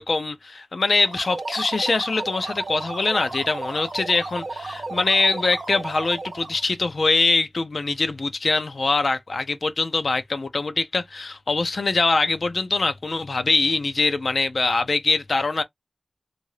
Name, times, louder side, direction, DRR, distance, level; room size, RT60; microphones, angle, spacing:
voice 1, 0.0-15.6, left 3 dB, 80° left, 0.5 m, -23 dB
sound 1, 0.9-6.6, right 3 dB, 80° right, 0.7 m, -33 dB
2.7 x 2.5 x 3.2 m
wide cardioid pair, 50°, 0 cm